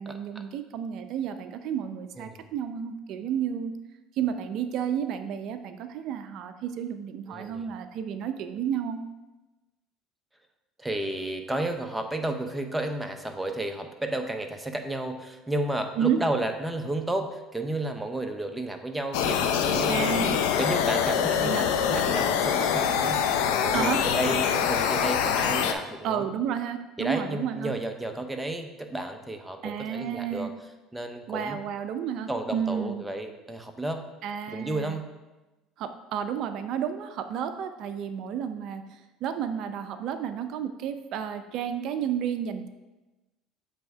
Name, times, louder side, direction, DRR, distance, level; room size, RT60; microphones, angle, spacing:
voice 1, 0.0-3.7 4.2-9.0 16.0-16.2 19.9-20.3 21.4-21.7 23.7-24.0 26.0-27.7 29.6-30.5 31.3-33.0 34.2-35.0 35.8-42.7, right 8 dB, 60° right, 9 dB, 0.4 m, -31 dB
voice 2, 7.3-7.7 10.8-20.1 20.6-26.3 27.0-30.5 30.9-31.6 32.3-34.0 34.5-35.1, right 1 dB, 5° right, 5 dB, 0.7 m, -32 dB
sound 1, 19.1-25.7, left 8 dB, 80° left, 0.5 m, -25 dB
7.5 x 3.4 x 4.6 m, 1.1 s
supercardioid pair, 105°, 0 cm